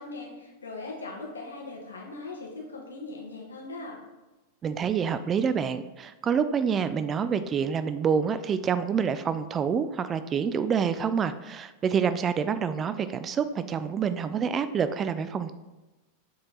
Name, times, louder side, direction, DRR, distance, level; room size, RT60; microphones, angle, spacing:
voice 1, 0.0-4.0, left 3 dB, 75° left, -1 dB, 1.6 m, -40 dB
voice 2, 4.6-15.5, right 7 dB, 25° right, 12 dB, 0.3 m, -27 dB
7.4 x 4.2 x 4.1 m, 1.1 s
figure-of-eight pair, 90°, 0 cm